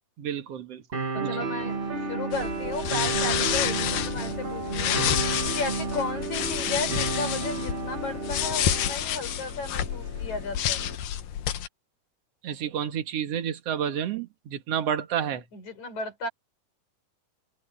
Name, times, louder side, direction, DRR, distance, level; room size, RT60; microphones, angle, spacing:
voice 1, 0.2-1.5 12.4-15.4, right 9 dB, 50° right, 2.5 m, -30 dB
sound 1, 0.9-8.9, right 4 dB, 75° right, 0.5 m, -31 dB
voice 2, 1.1-1.8 2.1-5.0 5.5-10.8 15.5-16.3, left 3 dB, 60° left, 6.4 m, -34 dB
sound 2, 1.6-11.0, right 1 dB, 20° right, 5.9 m, -45 dB
sound 3, 2.3-11.7, left 10 dB, 75° left, 2.8 m, -29 dB
open air
omnidirectional pair, 3.9 m